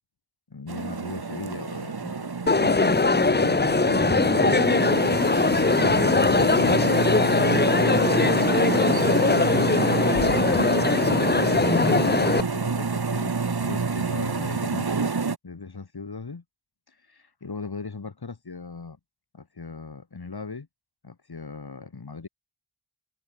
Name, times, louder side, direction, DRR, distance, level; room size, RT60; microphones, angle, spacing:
voice 1, 0.5-4.6 5.8-7.5 7.9-9.3 10.0-15.1 15.4-16.4 16.9-19.0 19.3-20.7 21.0-22.3, left 4 dB, 70° left, 4.0 m, -38 dB
sound 1, 0.7-15.4, right 4 dB, 70° right, 2.9 m, -28 dB
Crowd, 2.5-12.4, left 3 dB, 25° left, 0.8 m, -21 dB
wide cardioid pair, 55°, 40 cm